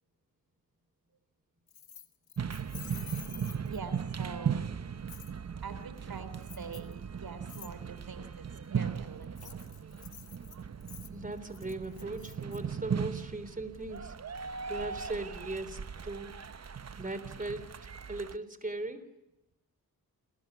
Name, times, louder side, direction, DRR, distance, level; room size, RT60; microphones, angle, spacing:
Keys jangling, 1.7-4.0 5.1-5.3 6.4-6.9 7.5-7.7 9.2-12.6, left 7 dB, 80° left, 2.4 m, -50 dB
sound 1, 2.4-18.4, right 7 dB, 45° right, 0.9 m, -38 dB
voice 1, 3.7-4.8 5.6-8.5 8.7-9.6, right 5 dB, 75° right, 12 dB, 3.4 m, -44 dB
voice 2, 11.1-16.3 17.0-17.7 18.1-19.0, right 2 dB, 20° right, 13 dB, 3.6 m, -39 dB
29.5 x 21.0 x 9.7 m, 0.96 s
cardioid pair, 75°, 36 cm